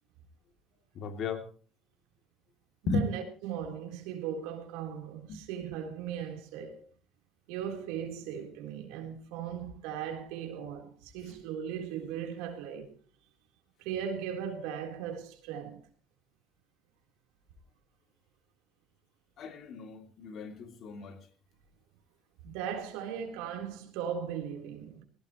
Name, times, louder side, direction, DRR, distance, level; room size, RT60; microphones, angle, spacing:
voice 1, 0.9-1.4 2.9-3.1 5.3-5.4 11.3-11.4 19.4-21.2, left 3 dB, 55° left, 2.8 m, -35 dB
voice 2, 2.8-6.8 7.5-12.9 13.8-15.8 22.4-25.0, right 8 dB, 85° right, 3.8 m, -38 dB
19.5 x 17.5 x 3.1 m
supercardioid pair, 100°, 0 cm